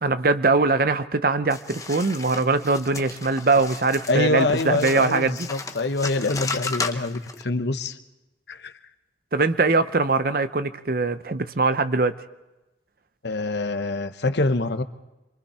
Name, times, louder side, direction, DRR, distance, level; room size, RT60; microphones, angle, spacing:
voice 1, 0.0-5.5 9.3-12.2, right 3 dB, 50° right, 12 dB, 0.7 m, -22 dB
sound 1, 1.5-7.4, left 4 dB, 20° left, 0.8 m, -34 dB
voice 2, 4.1-8.0 8.5-8.7 13.2-14.8, left 2 dB, 70° left, 9 dB, 0.9 m, -25 dB
27.5 x 23.0 x 4.3 m, 1.0 s
head